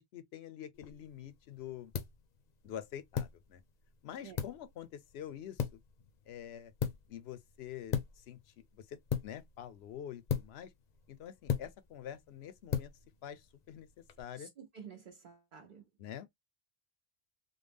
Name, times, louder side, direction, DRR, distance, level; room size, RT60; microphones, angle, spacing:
voice 1, 0.0-1.9 2.6-3.6 4.0-5.8 6.3-6.7 7.1-8.4 8.7-10.7 11.1-12.9 13.2-13.9 14.2-14.5 16.0-16.3, left 10 dB, 90° left, 0.8 m, -46 dB
sound 1, 0.7-14.2, left 8 dB, 50° left, 0.6 m, -40 dB
voice 2, 14.4-15.9, right 6 dB, 55° right, 0.8 m, -51 dB
3.4 x 2.1 x 3.4 m
omnidirectional pair, 1.0 m